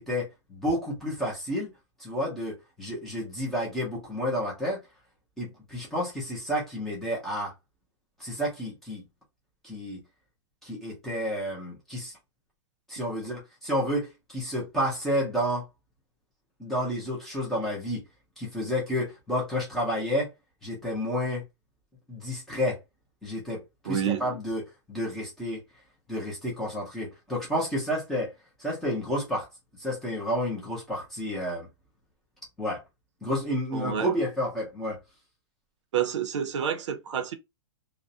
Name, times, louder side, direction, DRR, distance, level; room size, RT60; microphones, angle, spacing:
voice 1, 0.0-1.7 2.0-4.8 5.4-7.5 8.2-9.0 9.6-10.0 10.6-12.2 12.9-15.6 16.6-18.0 18.4-20.3 20.6-21.4 22.1-22.8 23.2-24.6 24.9-25.6 26.1-28.3 28.6-29.5 29.8-31.7 32.6-32.8 33.2-35.0, equal, ahead, 0.5 m, -30 dB
voice 2, 23.9-24.2 33.7-34.1 35.9-37.3, right 8 dB, 75° right, 0.5 m, -28 dB
2.4 x 2.0 x 2.6 m
hypercardioid pair, 175°, 15 cm